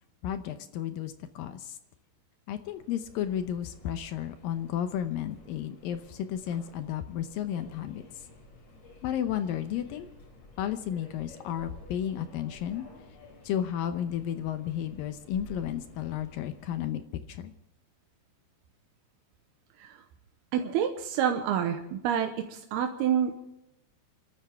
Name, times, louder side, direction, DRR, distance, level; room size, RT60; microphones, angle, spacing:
voice 1, 0.2-1.8 2.5-8.0 9.0-10.1 10.6-12.9 13.4-17.0 17.3-17.5, left 10 dB, 75° left, 9 dB, 2.4 m, -33 dB
Subway metro underground, 2.5-16.9, left 2 dB, 50° left, 4.4 m, -52 dB
voice 2, 20.5-23.4, right 9 dB, 85° right, 5 dB, 3.0 m, -28 dB
29.0 x 13.0 x 3.5 m, 0.87 s
omnidirectional pair, 4.5 m